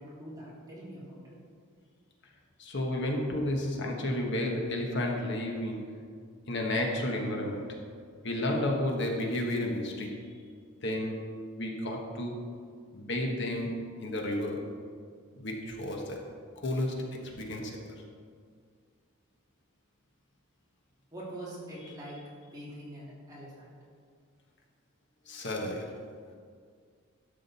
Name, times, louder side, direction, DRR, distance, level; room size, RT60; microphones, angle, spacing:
voice 1, 0.0-1.4 21.1-22.2 22.4-23.8, right 1 dB, 15° right, -7 dB, 2.5 m, -44 dB
voice 2, 2.6-6.0 6.5-7.8 8.2-10.3 10.8-11.2 11.6-12.5 12.9-14.6 15.4-17.9 25.3-26.0, left 1 dB, 55° left, 1 dB, 1.3 m, -32 dB
12.5 x 7.4 x 4.2 m, 2.1 s
head